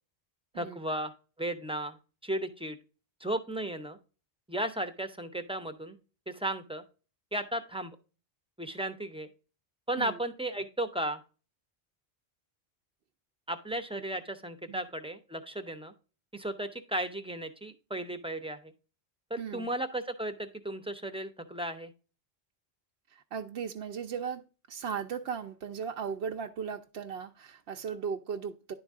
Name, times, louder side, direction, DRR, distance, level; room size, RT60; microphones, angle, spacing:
voice 1, 0.5-1.1 1.4-2.8 3.2-4.0 4.5-6.0 6.3-6.8 7.3-8.0 8.6-9.3 9.9-11.2 13.5-15.9 16.3-18.7 19.3-21.9, right 1 dB, 5° right, 0.6 m, -35 dB
voice 2, 19.4-19.7 23.1-24.4 24.7-28.7, right 7 dB, 75° right, 0.9 m, -37 dB
10.5 x 3.9 x 3.6 m
omnidirectional pair, 1.0 m